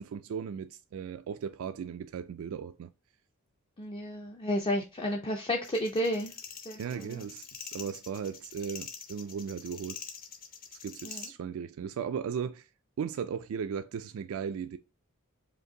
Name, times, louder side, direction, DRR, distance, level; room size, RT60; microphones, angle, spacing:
voice 1, 0.0-2.9 6.8-10.0 10.7-12.7 13.0-14.8, right 7 dB, 70° right, 0.3 m, -37 dB
voice 2, 3.8-6.3 6.7-7.2 11.0-11.2, left 1 dB, 25° left, 0.5 m, -32 dB
sound 1, 5.6-11.3, left 7 dB, 40° left, 0.8 m, -45 dB
5.2 x 2.6 x 3.7 m
head